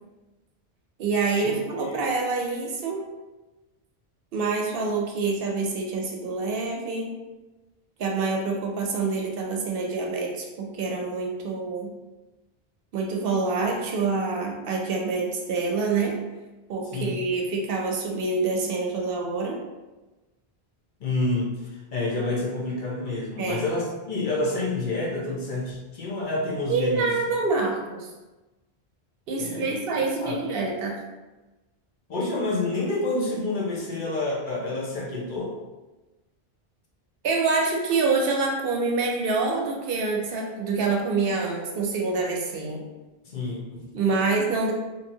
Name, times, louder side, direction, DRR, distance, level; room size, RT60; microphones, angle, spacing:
voice 1, 1.0-3.0 4.3-7.1 8.0-11.9 12.9-16.2 16.7-19.6 23.4-23.6 26.7-28.1 29.3-31.0 37.2-42.8 43.9-44.7, right 4 dB, 70° right, 0 dB, 0.7 m, -26 dB
voice 2, 21.0-21.6 21.9-27.1 29.4-30.4 32.1-35.5 43.2-43.8, left 2 dB, 55° left, -3 dB, 0.8 m, -28 dB
2.9 x 2.7 x 2.7 m, 1.1 s
omnidirectional pair, 1.1 m